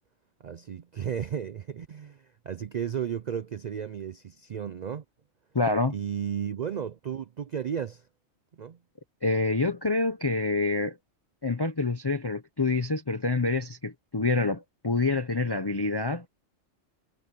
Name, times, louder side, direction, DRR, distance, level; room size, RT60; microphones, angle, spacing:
voice 1, 0.4-5.0 5.9-8.0 8.6-8.8, right 8 dB, 75° right, 0.4 m, -34 dB
voice 2, 5.5-6.0 9.2-11.0 11.4-16.2, left 3 dB, 20° left, 0.8 m, -27 dB
omnidirectional pair, 1.3 m